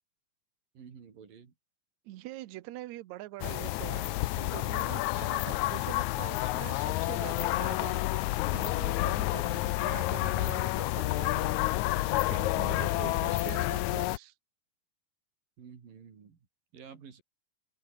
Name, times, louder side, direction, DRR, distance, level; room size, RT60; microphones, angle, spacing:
voice 1, 0.8-1.5 13.0-13.7 15.6-16.4 16.7-17.2, right 7 dB, 85° right, 5.3 m, -51 dB
voice 2, 2.1-11.6 12.3-14.3, right 16 dB, 70° right, 2.0 m, -44 dB
sound 1, 3.4-14.2, left 17 dB, 80° left, 1.9 m, -30 dB
open air
omnidirectional pair, 3.8 m